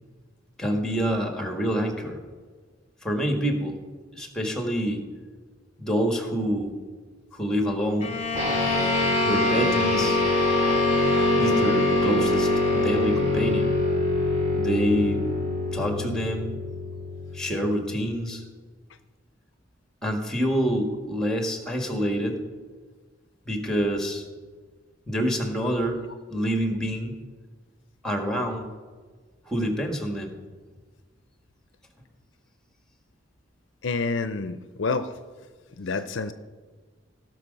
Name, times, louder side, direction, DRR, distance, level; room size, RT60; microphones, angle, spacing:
voice 1, 0.6-2.2 3.0-3.7 4.1-5.0 5.8-6.8 7.3-8.2 9.2-10.2 11.4-13.7 14.5-15.2 15.7-16.6 17.3-18.4 20.0-22.4 23.5-24.2 25.1-26.0 26.3-27.2 28.0-28.7 29.5-30.3, equal, 5° left, 4 dB, 1.5 m, -27 dB
Bowed string instrument, 8.0-13.8, left 3 dB, 35° left, 0.8 m, -26 dB
sound 1, 8.3-18.0, left 1 dB, 40° right, 2.3 m, -25 dB
voice 2, 33.8-35.1 35.8-36.3, left 4 dB, 65° left, 11 dB, 0.5 m, -28 dB
17.5 x 6.2 x 5.2 m, 1.5 s
head